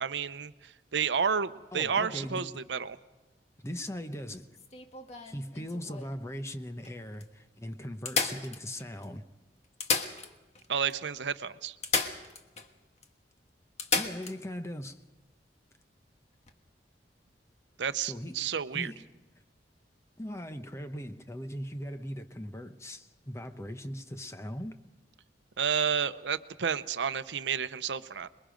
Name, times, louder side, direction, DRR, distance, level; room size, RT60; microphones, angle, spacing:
voice 1, 0.0-3.0 10.7-11.8 17.8-18.9 25.6-28.3, right 7 dB, 85° right, 0.7 m, -31 dB
voice 2, 1.7-2.5 3.6-4.5 5.2-9.2 13.9-15.0 18.0-19.1 20.2-24.8, equal, 15° left, 0.9 m, -39 dB
sound 1, 4.5-6.2 6.8-6.9 7.2-7.3 8.1-9.1 9.6-10.7 10.9-11.0 11.8-12.7 13.0-13.1 13.8-14.4 16.3-16.5, left 4 dB, 40° left, 1.5 m, -32 dB
27.0 x 21.5 x 5.2 m
head